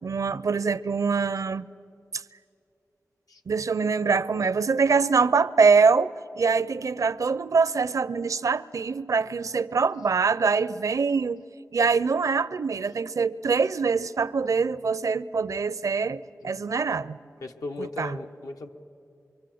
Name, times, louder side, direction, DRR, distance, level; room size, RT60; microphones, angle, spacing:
voice 1, 0.0-1.7 2.1-2.2 3.5-11.4 11.7-17.2 17.8-18.2, right 5 dB, 70° right, 0.6 m, -24 dB
voice 2, 17.4-18.7, left 2 dB, 85° left, 1.3 m, -37 dB
24.5 x 24.5 x 7.8 m
wide cardioid pair, 60°, 6 cm